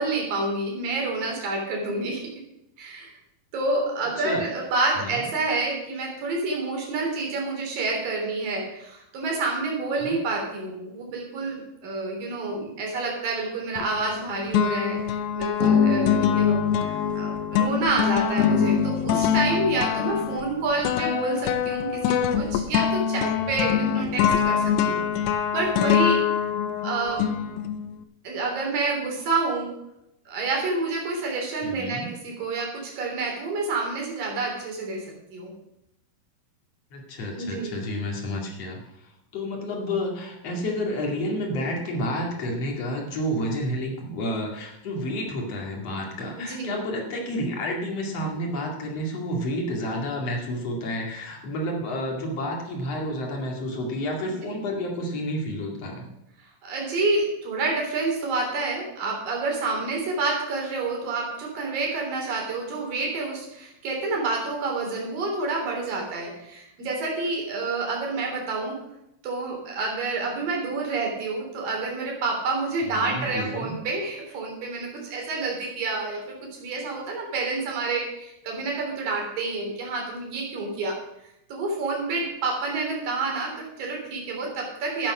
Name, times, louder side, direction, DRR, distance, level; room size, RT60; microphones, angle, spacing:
voice 1, 0.0-2.2 2.8-3.1 3.5-26.2 26.8-27.3 28.2-29.8 30.3-35.1 35.3-35.5 37.3-37.8 46.4-46.8 54.4-54.5 56.6-68.8 69.2-81.0 81.5-85.1, right 3 dB, 50° right, 0 dB, 4.6 m, -28 dB
sound 1, 13.8-14.2 14.5-28.0, left 8 dB, 80° left, 2.6 m, -24 dB
voice 2, 31.6-32.1 36.9-38.8 39.3-56.1 72.9-73.7, equal, 45° left, 0 dB, 2.5 m, -30 dB
12.5 x 8.8 x 6.2 m, 0.86 s
omnidirectional pair, 5.5 m